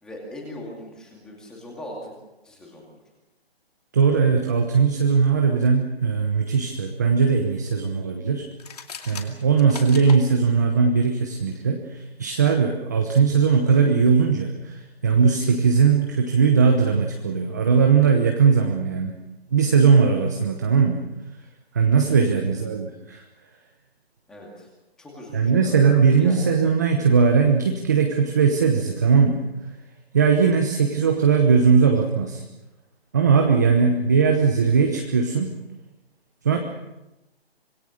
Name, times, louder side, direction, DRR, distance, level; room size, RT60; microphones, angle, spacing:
voice 1, 0.0-2.1 2.4-2.8 24.3-24.7 25.0-25.8 26.2-26.5 36.5-36.6, left 1 dB, ahead, -2 dB, 2.4 m, -39 dB
voice 2, 3.9-8.4 9.1-11.8 12.2-19.1 19.5-21.0 21.7-23.2 25.3-29.4 30.1-32.4 33.1-35.5 36.4-36.6, right 5 dB, 15° right, 3 dB, 1.0 m, -19 dB
sound 1, 8.5-10.2, left 6 dB, 35° left, 2.7 m, -38 dB
26.0 x 21.5 x 6.5 m, 0.99 s
hypercardioid pair, 175°, 32 cm